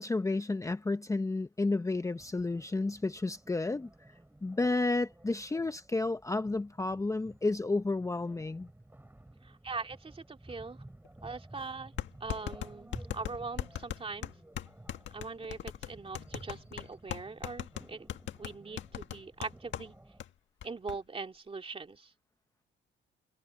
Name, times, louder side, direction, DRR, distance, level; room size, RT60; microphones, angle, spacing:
voice 1, 0.0-3.9 4.4-8.7, left 2 dB, 15° left, 0.8 m, -31 dB
sound 1, 2.2-20.2, right 1 dB, 10° right, 7.7 m, -54 dB
voice 2, 9.4-10.8 11.2-11.9 12.2-14.3 15.1-18.1 18.4-19.9 20.6-22.1, right 4 dB, 30° right, 2.3 m, -41 dB
sound 2, 11.0-11.1 12.0-19.9 20.2-20.3 20.6-21.0, left 10 dB, 70° left, 1.8 m, -39 dB
cardioid pair, 90°, 20 cm